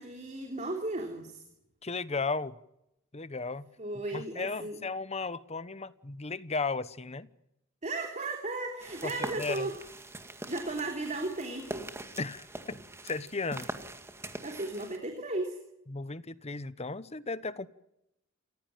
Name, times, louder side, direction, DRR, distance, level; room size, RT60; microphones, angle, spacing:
voice 1, 0.0-1.4 3.8-4.8 7.8-9.7 10.5-11.9 14.4-15.6, right 2 dB, 35° right, 3.2 m, -35 dB
voice 2, 1.8-2.5 3.1-3.7 4.1-7.3 9.0-9.1 9.4-9.7 12.2-12.8 13.0-13.7 15.9-17.7, left 3 dB, 30° left, 1.0 m, -35 dB
sound 1, 8.8-15.0, right 2 dB, 15° right, 2.0 m, -43 dB
28.5 x 15.5 x 9.1 m
head